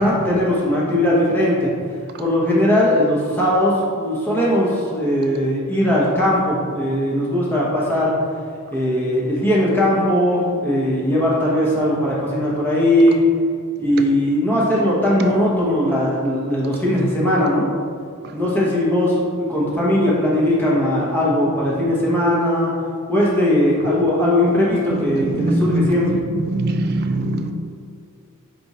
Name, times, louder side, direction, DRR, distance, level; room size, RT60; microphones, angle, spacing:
voice 1, 0.0-1.7 2.2-8.1 8.7-13.2 13.8-17.7 18.3-22.7 23.1-26.1, left 1 dB, 10° left, -6 dB, 0.9 m, -19 dB
voice 2, 24.9-27.5, right 1 dB, 45° right, 6 dB, 0.3 m, -22 dB
4.8 x 2.6 x 4.1 m, 2.2 s
head